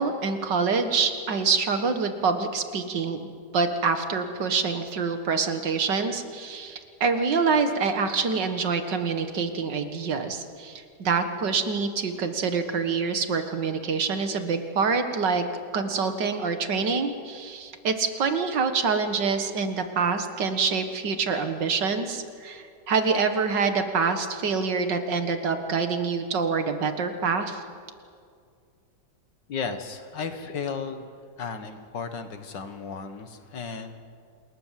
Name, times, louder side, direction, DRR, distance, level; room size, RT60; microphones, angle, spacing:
voice 1, 0.0-15.4 15.7-27.6, right 5 dB, 80° right, 8 dB, 2.3 m, -26 dB
voice 2, 29.5-31.1 31.4-34.0, left 5 dB, 85° left, 8 dB, 2.3 m, -34 dB
27.5 x 20.5 x 7.6 m, 2.2 s
omnidirectional pair, 1.9 m